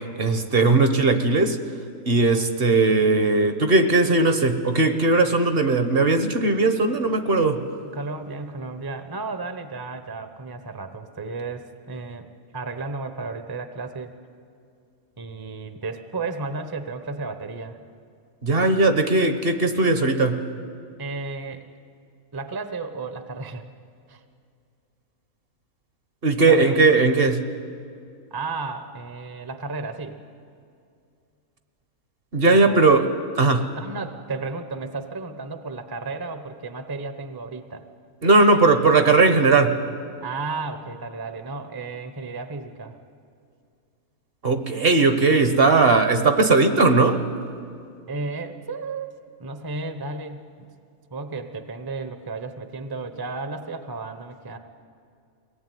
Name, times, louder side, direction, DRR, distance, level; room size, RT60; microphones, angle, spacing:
voice 1, 0.2-1.6 2.1-7.6 18.4-20.4 26.2-27.5 32.3-33.1 33.4-33.7 38.2-39.8 44.4-47.2, right 3 dB, 45° right, 8 dB, 1.3 m, -18 dB
voice 2, 7.8-14.1 15.2-17.8 21.0-21.6 22.3-23.6 24.1-24.2 26.5-26.8 28.3-30.2 32.5-33.0 33.7-37.8 40.2-43.0 48.1-49.1 49.4-50.7 51.1-54.6, right 3 dB, 20° right, 8 dB, 0.9 m, -33 dB
23.0 x 18.5 x 9.2 m, 2.4 s
omnidirectional pair, 1.5 m